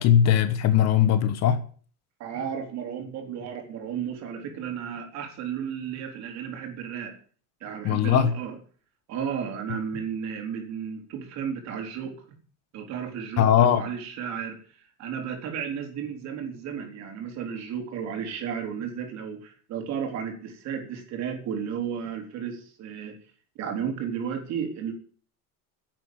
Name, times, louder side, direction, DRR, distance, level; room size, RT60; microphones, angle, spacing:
voice 1, 0.0-1.6 7.8-8.4 13.4-13.8, left 9 dB, 40° left, 1.3 m, -20 dB
voice 2, 2.2-7.1 7.6-8.6 9.1-12.2 12.7-23.2 23.6-24.9, right 7 dB, 45° right, 4.0 m, -33 dB
11.0 x 8.3 x 9.4 m
cardioid pair, 165°, 38 cm